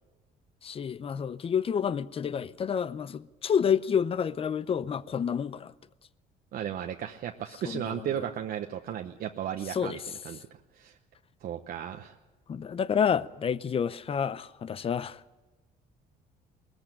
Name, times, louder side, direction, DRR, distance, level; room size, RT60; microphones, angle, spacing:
voice 1, 0.6-5.7 7.6-8.1 9.7-10.0 12.5-15.2, left 7 dB, 35° left, 0.6 m, -29 dB
voice 2, 6.5-10.0 10.2-10.5 10.7-11.0 11.4-12.1, right 10 dB, 60° right, 1.0 m, -35 dB
20.5 x 14.5 x 8.9 m
cardioid pair, 110°, 17 cm